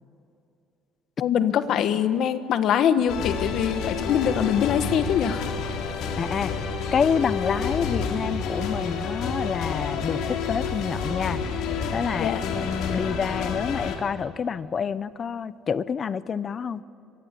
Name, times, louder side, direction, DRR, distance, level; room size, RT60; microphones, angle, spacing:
voice 1, 1.2-5.5 12.2-12.4, left 9 dB, 50° left, 11 dB, 1.3 m, -23 dB
sound 1, 3.1-14.0, left 5 dB, 65° left, 3.5 m, -29 dB
voice 2, 6.2-6.6 6.9-11.6 11.9-16.8, left 6 dB, 30° left, 17 dB, 0.7 m, -28 dB
24.0 x 24.0 x 8.3 m, 2.7 s
cardioid pair, 170°, 0 cm